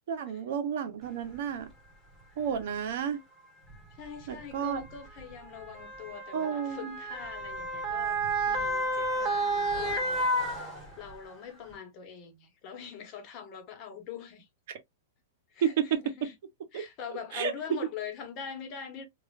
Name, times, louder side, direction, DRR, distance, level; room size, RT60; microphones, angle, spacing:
voice 1, 0.1-1.7 2.4-3.2 4.3-4.8 6.3-7.0 15.6-16.3 16.7-16.8 17.3-17.5, right 8 dB, 65° right, 0.8 m, -31 dB
Motor vehicle (road) / Siren, 1.3-1.4 2.4-2.6 3.7-11.3 11.7-11.8, right 1 dB, ahead, 1.5 m, -31 dB
voice 2, 3.9-14.5 15.5-16.3 16.7-19.1, left 7 dB, 40° left, 1.0 m, -43 dB
3.1 x 2.4 x 2.4 m
hypercardioid pair, 135°, 0 cm